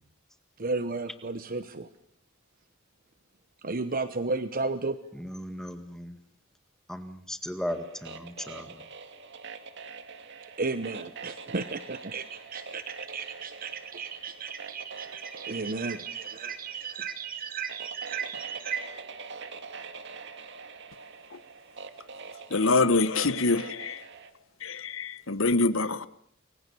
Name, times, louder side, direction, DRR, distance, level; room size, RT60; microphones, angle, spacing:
voice 1, 0.6-1.9 3.6-5.0 10.6-18.8, right 4 dB, 45° right, 1.0 m, -34 dB
voice 2, 5.1-6.2 6.9-8.8, equal, ahead, 1.9 m, -37 dB
sound 1, 7.7-24.3, right 5 dB, 60° right, 2.3 m, -44 dB
voice 3, 22.5-24.0 24.6-26.1, left 3 dB, 75° left, 1.4 m, -25 dB
29.0 x 23.5 x 7.0 m
head